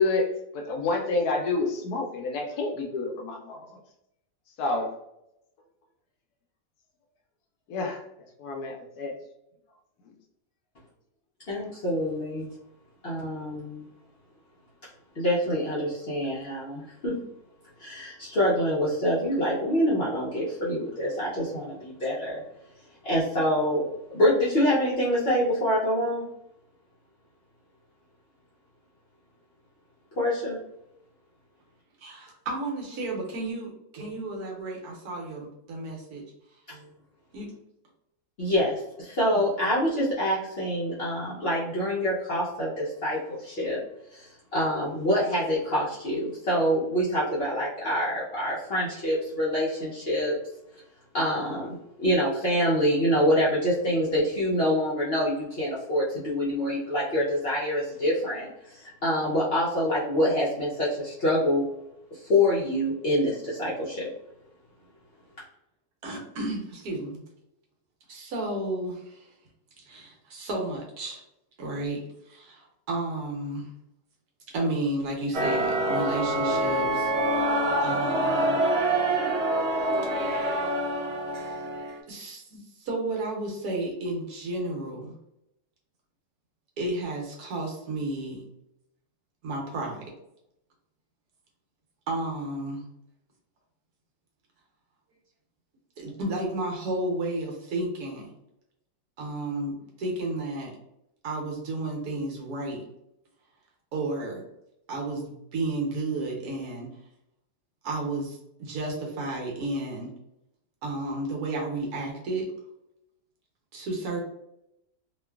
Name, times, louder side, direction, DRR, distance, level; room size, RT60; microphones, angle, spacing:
voice 1, 0.0-3.7 4.6-5.0 7.7-8.0 8.4-9.1, left 3 dB, 75° left, 1 dB, 1.0 m, -28 dB
voice 2, 11.5-12.5 13.0-13.8 15.2-17.2 17.8-22.4 23.0-23.8 24.1-26.2 30.2-30.6 38.4-43.8 44.1-50.4 51.1-61.7 62.1-64.1, equal, 55° left, -8 dB, 0.7 m, -26 dB
voice 3, 32.0-36.2 36.7-36.8 37.3-37.5 66.0-67.2 68.1-69.3 69.9-71.2 71.6-73.7 74.5-77.1 77.8-78.6 80.1-81.0 82.1-85.1 86.8-88.4 89.4-90.0 92.1-92.8 96.0-98.3 99.2-100.7 101.2-102.8 103.9-104.4 104.9-106.9 107.8-110.1 110.8-112.5 113.7-114.2, right 2 dB, 70° right, -1 dB, 1.2 m, -32 dB
sound 1, 75.3-82.0, right 1 dB, 90° right, 0.5 m, -26 dB
2.9 x 2.4 x 2.3 m, 0.83 s
omnidirectional pair, 1.8 m